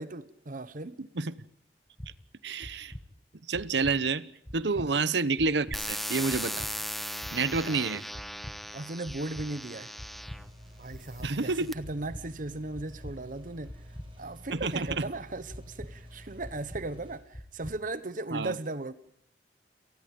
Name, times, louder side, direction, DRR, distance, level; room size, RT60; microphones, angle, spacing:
voice 1, 0.0-1.0 4.8-5.0 7.6-7.9 8.7-9.9 10.8-13.8 14.2-18.9, right 2 dB, 50° right, 1.1 m, -37 dB
voice 2, 1.0-1.3 2.4-2.9 3.5-4.2 4.5-6.7 7.3-8.0 11.2-11.7 14.5-15.0 18.3-18.6, right 4 dB, 75° right, 1.0 m, -29 dB
sound 1, 2.0-2.1 2.6-3.0 3.5-3.9 4.5-4.9 5.4-5.8 6.3-6.7 7.2-7.6 8.1-8.5 9.1-9.5 10.0-10.4 10.9-11.3 11.8-12.2 12.7-13.1 13.7-14.1 14.6-15.0 15.5-15.9 16.4-16.8 17.3-17.7, equal, 15° left, 1.4 m, -42 dB
sound 2, 5.7-10.5 11.2-11.7, equal, ahead, 1.1 m, -38 dB
sound 3, 10.1-17.2, equal, 30° right, 6.7 m, -50 dB
29.0 x 19.5 x 5.4 m
head